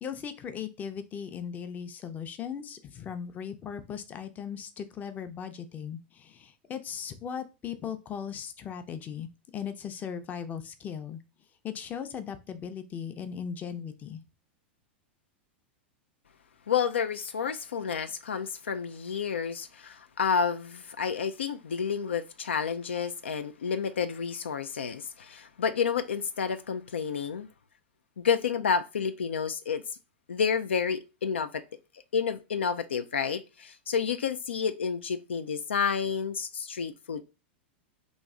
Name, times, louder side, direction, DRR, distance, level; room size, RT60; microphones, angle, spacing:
voice 1, 0.0-11.2 11.6-14.2, left 7 dB, 25° left, 0.6 m, -38 dB
voice 2, 16.7-27.5 28.2-29.8 30.3-31.6 32.1-37.2, left 6 dB, 85° left, 0.4 m, -30 dB
3.0 x 2.6 x 3.6 m
hypercardioid pair, 105°, 6 cm